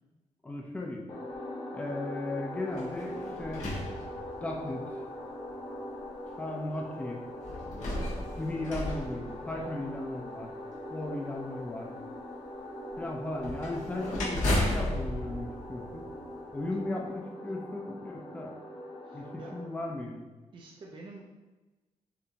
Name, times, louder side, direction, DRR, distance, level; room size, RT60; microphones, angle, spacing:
voice 1, 0.4-1.0 1.7-3.6 4.4-4.8 6.4-7.2 8.4-10.5 10.9-11.9 13.0-16.1 16.5-18.5 19.1-20.2, left 2 dB, 10° left, -1 dB, 0.5 m, -36 dB
sound 1, 1.1-19.7, left 1 dB, 45° left, 0.9 m, -42 dB
sound 2, 2.7-4.7 5.5-5.6 7.4-10.0 13.4-16.5, left 1 dB, 75° left, 1.4 m, -34 dB
voice 2, 19.0-19.5 20.5-21.3, right 3 dB, 40° right, -2 dB, 0.5 m, -48 dB
6.9 x 2.6 x 2.9 m, 1.2 s
wide cardioid pair, 180°, 12 cm